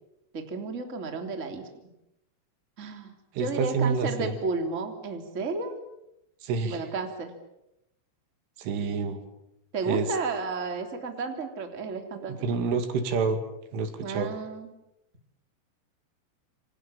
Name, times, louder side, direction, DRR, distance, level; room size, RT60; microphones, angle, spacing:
voice 1, 0.3-1.7 2.8-5.8 6.7-7.3 9.7-12.6 14.0-14.7, right 3 dB, 20° right, 5 dB, 2.6 m, -32 dB
voice 2, 3.3-4.3 6.4-6.8 8.6-9.2 9.9-10.1 12.4-13.4 13.7-14.3, right 5 dB, 75° right, 8 dB, 4.8 m, -27 dB
28.5 x 26.5 x 7.4 m, 0.85 s
omnidirectional pair, 5.7 m